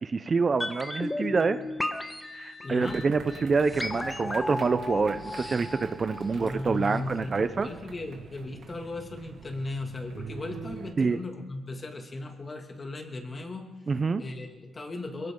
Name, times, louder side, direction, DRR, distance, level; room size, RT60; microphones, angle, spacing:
voice 1, 0.0-1.6 2.3-7.7 11.0-11.2 13.9-14.2, right 4 dB, 35° right, 11 dB, 0.7 m, -26 dB
sound 1, 0.6-6.6 6.9-7.0, left 2 dB, 15° left, 1.3 m, -35 dB
voice 2, 2.6-3.0 6.3-13.7 14.2-15.3, left 2 dB, 30° left, 4 dB, 2.3 m, -37 dB
sound 2, 2.8-10.9, right 5 dB, 60° right, 2.4 m, -44 dB
22.5 x 16.5 x 3.9 m, 1.3 s
cardioid pair, 90°, 0 cm